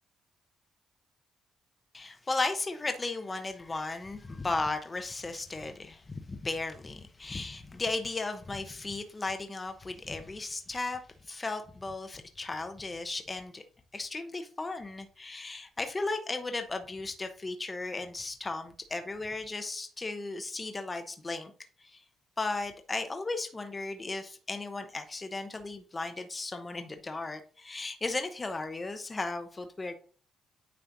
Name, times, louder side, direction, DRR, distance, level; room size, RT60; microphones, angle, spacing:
voice 1, 1.9-13.6 13.9-21.5 21.8-22.0 22.4-29.9, left 3 dB, 25° left, 1.0 m, -35 dB
9.4 x 3.3 x 4.0 m
cardioid pair, 90°, 0 cm